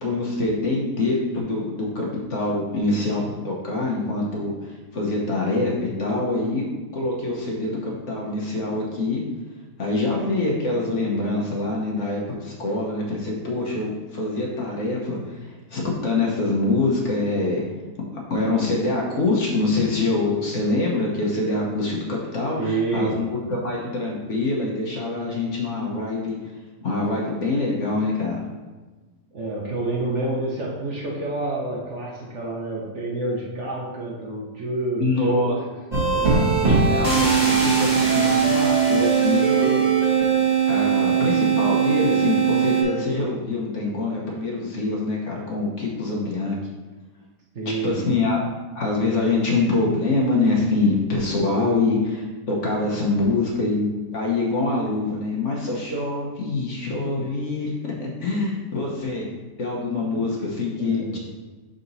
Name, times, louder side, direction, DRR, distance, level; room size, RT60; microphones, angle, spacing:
voice 1, 0.0-6.6 6.9-9.2 9.8-17.6 18.0-26.3 26.8-28.4 35.0-35.5 36.6-40.1 40.7-46.6 47.6-48.4 48.7-57.7 58.0-59.3 59.6-61.2, left 2 dB, 50° left, -3 dB, 1.2 m, -25 dB
voice 2, 22.6-23.2 29.3-35.4 36.0-36.3 38.3-38.6 47.5-48.0 60.8-61.2, right 2 dB, 50° right, -3 dB, 1.1 m, -28 dB
sound 1, 35.9-42.8, right 6 dB, 30° right, 1.3 m, -20 dB
6.0 x 3.9 x 4.0 m, 1.3 s
omnidirectional pair, 1.8 m